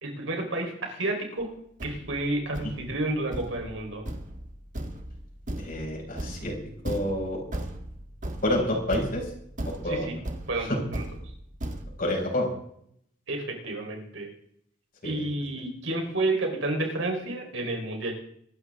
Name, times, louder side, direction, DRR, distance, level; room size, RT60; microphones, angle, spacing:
voice 1, 0.0-1.5 1.8-4.0 9.8-10.2 10.5-11.1 13.3-14.3 15.0-18.1, right 2 dB, 80° right, 2 dB, 4.1 m, -30 dB
Thump thud, 1.4-1.5 1.8-11.8, right 1 dB, 40° right, 1.8 m, -37 dB
voice 2, 5.6-6.5 6.8-7.4 8.4-9.2 9.8-10.1 12.0-12.5 15.0-15.2, left 1 dB, 50° left, -1 dB, 6.2 m, -28 dB
24.0 x 13.0 x 3.7 m, 0.70 s
head